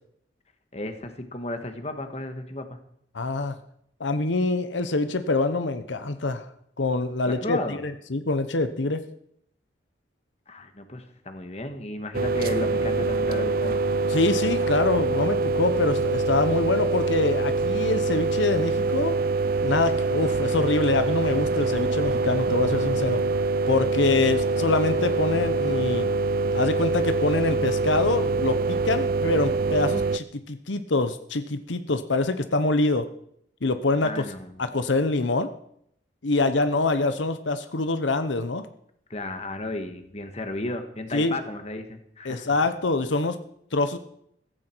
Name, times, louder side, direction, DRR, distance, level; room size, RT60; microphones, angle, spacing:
voice 1, 0.7-2.8 7.3-7.8 10.5-13.8 34.0-34.5 39.1-42.5, left 2 dB, 35° left, 7 dB, 1.6 m, -34 dB
voice 2, 3.1-3.6 4.0-6.5 6.8-9.0 14.1-19.2 19.6-23.2 23.7-26.1 26.5-33.0 33.6-34.2 34.6-35.5 36.2-38.6 41.1-41.4 42.2-43.4 43.7-44.0, left 3 dB, 90° left, 10 dB, 0.9 m, -25 dB
sound 1, 12.1-30.2, right 3 dB, 50° right, 0.5 m, -24 dB
15.5 x 15.0 x 4.6 m, 0.71 s
head